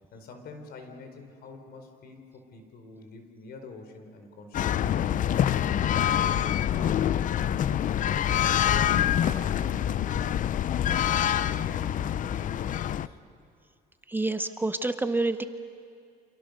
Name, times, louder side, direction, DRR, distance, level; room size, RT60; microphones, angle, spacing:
voice 1, 0.1-6.4 6.7-8.1 8.6-13.2, left 3 dB, 65° left, 5 dB, 4.5 m, -45 dB
sound 1, 4.5-13.1, left 10 dB, 50° left, 0.6 m, -26 dB
voice 2, 14.1-15.4, right 2 dB, 10° right, 9 dB, 0.9 m, -28 dB
29.5 x 27.0 x 6.8 m, 2.4 s
cardioid pair, 110°, 17 cm